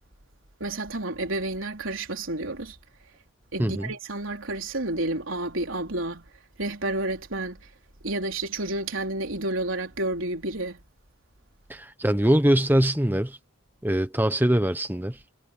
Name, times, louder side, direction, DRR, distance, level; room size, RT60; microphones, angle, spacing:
voice 1, 0.6-2.8 3.5-6.3 6.6-7.6 8.0-10.8, right 2 dB, 75° right, 3.6 m, -30 dB
voice 2, 3.6-3.9 11.7-13.4 13.8-15.2, right 1 dB, 10° right, 0.9 m, -23 dB
head